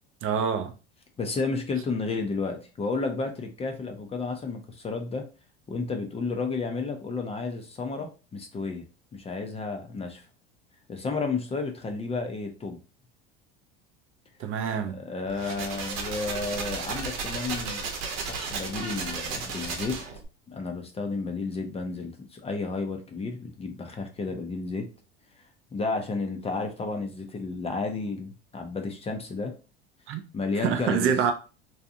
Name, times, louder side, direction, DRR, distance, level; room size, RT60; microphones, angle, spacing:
voice 1, 0.2-0.7 14.4-15.0 30.1-30.2 30.6-31.3, right 7 dB, 45° right, 0.5 m, -26 dB
voice 2, 1.2-5.2 5.7-8.8 9.1-10.2 10.9-12.8 14.9-17.8 18.3-20.0 20.5-24.9 25.7-29.5 30.3-31.1, left 3 dB, 20° left, 0.5 m, -32 dB
sound 1, 15.3-20.3, right 4 dB, 60° right, 0.9 m, -34 dB
2.7 x 2.3 x 2.6 m
hypercardioid pair, 90°, 31 cm